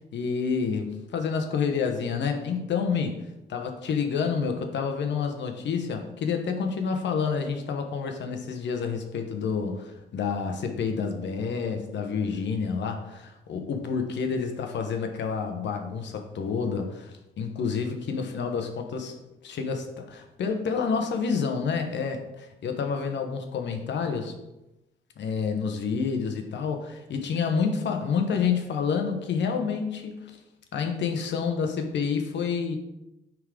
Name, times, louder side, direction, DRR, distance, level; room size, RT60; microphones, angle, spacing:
voice 1, 0.1-3.2 3.5-19.1 19.4-24.3 25.2-30.4 30.7-32.8, left 5 dB, 65° left, 4 dB, 1.1 m, -29 dB
9.4 x 3.8 x 4.9 m, 0.94 s
cardioid pair, 90°, 20 cm